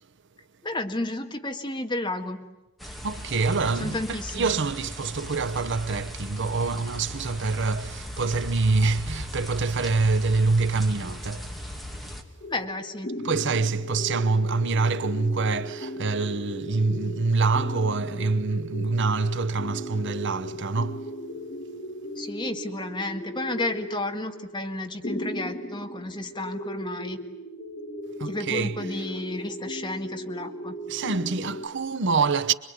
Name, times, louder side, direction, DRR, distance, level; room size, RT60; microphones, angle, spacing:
voice 1, 0.6-2.5 3.8-4.6 12.5-13.2 22.2-27.2 28.2-30.7, left 2 dB, 20° left, 1.8 m, -32 dB
sound 1, 2.8-12.2, equal, ahead, 2.3 m, -38 dB
voice 2, 3.0-11.6 13.2-21.1 28.2-29.0 30.9-32.5, right 4 dB, 60° right, 0.9 m, -26 dB
sound 2, 12.4-31.7, equal, 40° left, 3.0 m, -37 dB
26.5 x 22.5 x 9.3 m
head